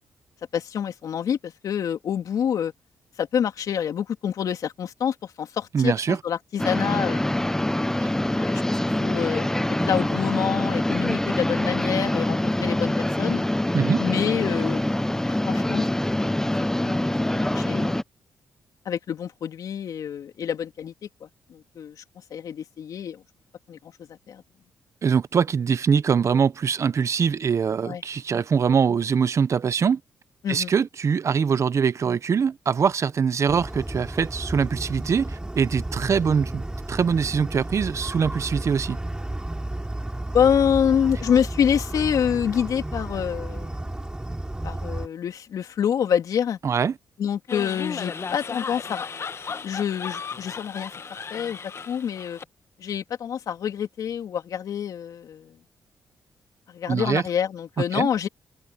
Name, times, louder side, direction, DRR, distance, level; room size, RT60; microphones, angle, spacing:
voice 1, 0.5-2.7 3.2-7.2 8.3-8.6 9.0-9.5 9.8-13.5 14.0-14.8 15.3-15.9 16.8-18.0 18.8-20.9 21.2-22.0 22.3-23.2 23.7-24.4 27.8-28.0 30.4-30.7 40.3-43.8 44.6-46.6 47.2-49.0 49.6-50.9 51.3-51.6 51.9-52.4 52.8-55.6 56.7-58.3, left 8 dB, 70° left, 3.1 m, -27 dB
voice 2, 5.7-6.2 8.0-8.1 13.7-14.0 25.0-30.0 30.5-36.6 36.9-39.0 46.6-46.9 56.8-57.2 57.9-58.1, right 6 dB, 50° right, 1.0 m, -23 dB
sound 1, 6.6-18.0, left 1 dB, 10° left, 0.8 m, -25 dB
sound 2, 33.5-45.1, right 1 dB, 15° right, 3.5 m, -32 dB
sound 3, 47.5-52.4, left 5 dB, 45° left, 1.3 m, -35 dB
cardioid pair, 65°, 6 cm